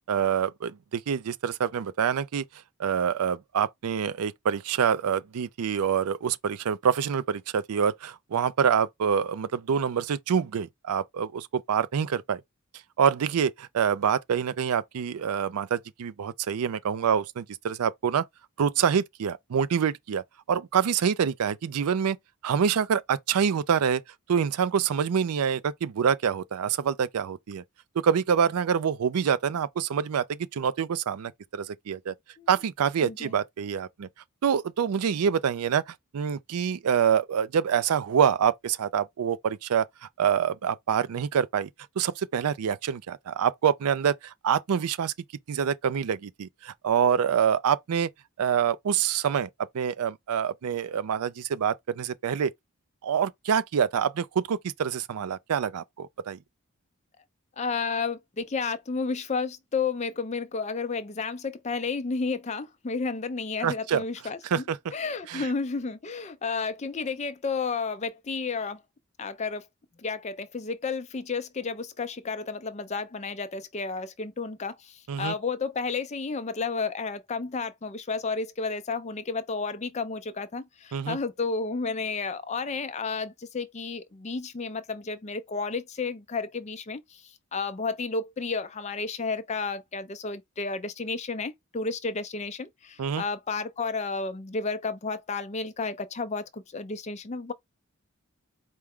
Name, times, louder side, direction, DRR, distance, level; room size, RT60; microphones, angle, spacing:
voice 1, 0.1-2.4 2.8-12.4 13.0-18.2 18.6-22.2 22.4-24.0 24.3-27.6 28.0-32.1 32.5-34.1 34.4-41.7 42.0-45.1 45.5-48.1 48.4-49.5 49.7-52.5 53.0-56.4 63.6-64.0 64.5-64.8 65.3-65.5 75.1-75.3 80.9-81.2 93.0-93.2, right 7 dB, 85° right, 0.4 m, -26 dB
voice 2, 57.6-64.6 64.9-68.8 69.2-69.6 70.0-97.5, left 4 dB, 30° left, 0.4 m, -32 dB
4.6 x 2.1 x 3.6 m
head